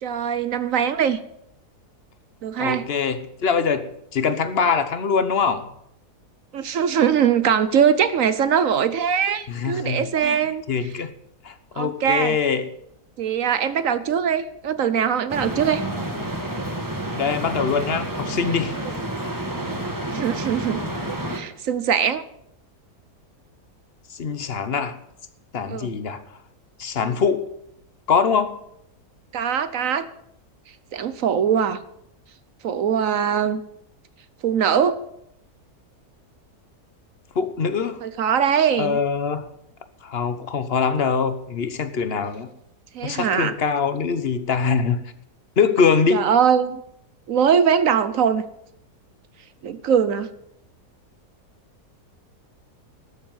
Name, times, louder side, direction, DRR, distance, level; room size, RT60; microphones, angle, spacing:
voice 1, 0.0-1.2 2.4-2.9 6.5-10.6 11.8-12.4 13.2-15.8 20.1-20.8 21.3-22.2 25.7-26.0 29.3-30.1 30.9-31.8 32.6-33.6 34.4-35.0 38.0-39.0 42.9-43.5 46.1-46.8 47.3-48.4 49.6-50.3, right 8 dB, 60° right, 13 dB, 1.1 m, -21 dB
voice 2, 2.6-3.8 4.1-5.6 9.5-10.4 10.7-11.1 11.4-12.7 17.2-18.8 24.1-24.9 25.5-26.2 26.8-27.4 28.1-28.6 37.3-38.0 38.8-39.4 40.0-42.5 43.0-45.0 45.6-46.3, left 6 dB, 45° left, 11 dB, 1.1 m, -23 dB
sound 1, 15.3-21.4, right 1 dB, 15° right, 1.5 m, -29 dB
13.0 x 7.4 x 9.2 m, 0.76 s
omnidirectional pair, 1.7 m